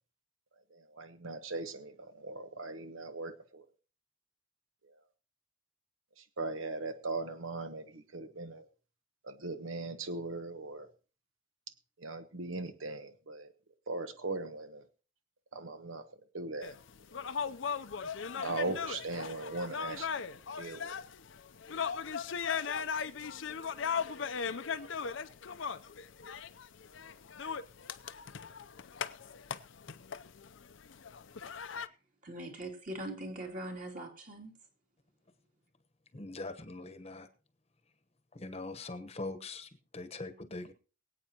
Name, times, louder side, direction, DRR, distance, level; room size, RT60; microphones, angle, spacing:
voice 1, 0.7-3.6 6.4-8.6 9.2-10.9 12.0-13.5 13.9-14.8 15.5-16.0 16.3-16.8 17.3-17.4 18.4-20.9, right 3 dB, 80° right, 9 dB, 1.1 m, -39 dB
sound 1, 16.6-31.9, left 6 dB, 65° left, 0.6 m, -38 dB
voice 2, 32.2-34.5, right 1 dB, 40° right, 1 dB, 2.7 m, -41 dB
voice 3, 36.1-37.3 38.3-40.7, left 2 dB, 30° left, 10 dB, 1.0 m, -42 dB
24.0 x 8.6 x 2.9 m, 0.36 s
head